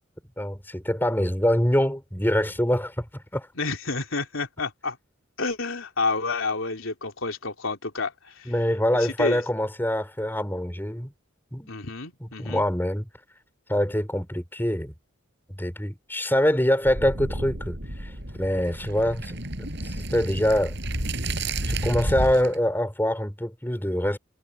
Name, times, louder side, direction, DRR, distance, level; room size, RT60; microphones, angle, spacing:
voice 1, 0.4-3.0 3.3-3.5 8.5-11.1 11.5-11.7 12.4-13.1 13.7-14.9 15.6-18.1 18.4-19.4 20.1-20.8 21.7-24.2, equal, 10° left, 4.9 m, -24 dB
voice 2, 3.5-5.0 5.4-8.5 9.0-9.4 11.7-12.6, left 3 dB, 75° left, 3.3 m, -29 dB
sound 1, 16.8-22.6, right 1 dB, 55° right, 7.8 m, -31 dB
head